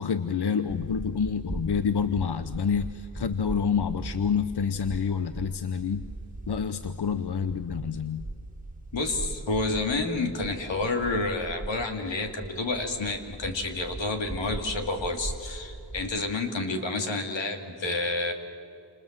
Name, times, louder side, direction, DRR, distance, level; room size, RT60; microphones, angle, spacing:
voice 1, 0.0-6.1 6.5-8.3, left 6 dB, 65° left, 11 dB, 0.9 m, -28 dB
sound 1, 0.7-16.3, right 2 dB, 20° right, 2.2 m, -40 dB
voice 2, 8.9-18.3, left 2 dB, 90° left, 4 dB, 2.8 m, -29 dB
28.5 x 27.5 x 7.5 m, 2.6 s
cardioid pair, 65°, 43 cm